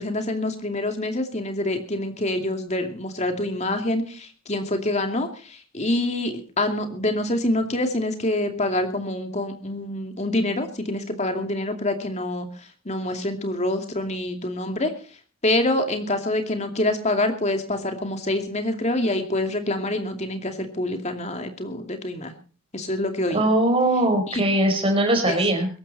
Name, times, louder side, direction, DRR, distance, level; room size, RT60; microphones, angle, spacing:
voice 1, 0.0-12.5 12.8-14.9 15.4-22.3 22.7-23.5 24.3-24.4 25.3-25.4, left 1 dB, 30° left, 6 dB, 2.6 m, -26 dB
voice 2, 23.3-25.7, right 1 dB, 25° right, 4 dB, 4.5 m, -20 dB
22.0 x 12.0 x 4.2 m, 0.38 s
head